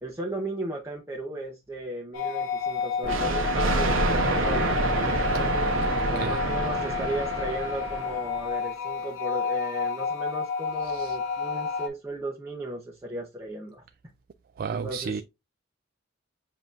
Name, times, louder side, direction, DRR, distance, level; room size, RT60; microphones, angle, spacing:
voice 1, 0.0-4.7 5.2-5.5 6.1-13.8 14.7-15.2, right 1 dB, 15° right, 0.8 m, -35 dB
sound 1, 2.1-11.9, left 4 dB, 80° left, 0.8 m, -30 dB
Thunder, 3.0-8.4, right 2 dB, 80° right, 1.1 m, -27 dB
voice 2, 10.8-11.2 14.6-15.2, right 5 dB, 50° right, 0.3 m, -32 dB
7.1 x 2.9 x 2.4 m
head